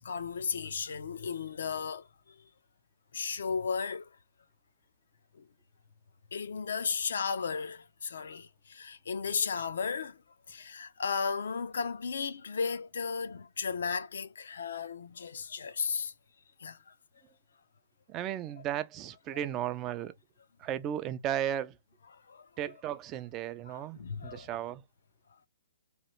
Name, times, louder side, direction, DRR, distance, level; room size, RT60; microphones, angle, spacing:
voice 1, 0.0-2.0 3.1-4.1 6.3-10.2 10.5-16.1 16.6-16.8 22.3-22.4 23.7-24.5, left 5 dB, 75° left, 0.5 m, -34 dB
voice 2, 18.1-20.1 20.6-21.8 22.6-24.8, right 11 dB, 25° right, 0.3 m, -35 dB
3.0 x 2.3 x 3.0 m
hypercardioid pair, 140°, 0 cm